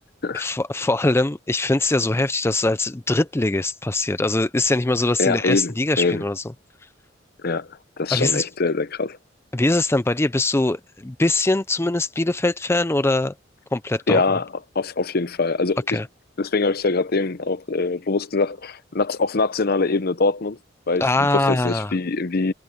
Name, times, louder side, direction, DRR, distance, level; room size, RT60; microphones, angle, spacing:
voice 1, 0.3-6.4 8.1-8.5 9.5-13.3 13.7-14.2 15.9-16.1 21.0-21.9, left 2 dB, 15° left, 0.5 m, -22 dB
voice 2, 5.2-6.2 7.4-9.2 14.1-14.5 14.7-16.0 16.4-20.6 20.9-22.5, left 3 dB, 50° left, 0.8 m, -23 dB
head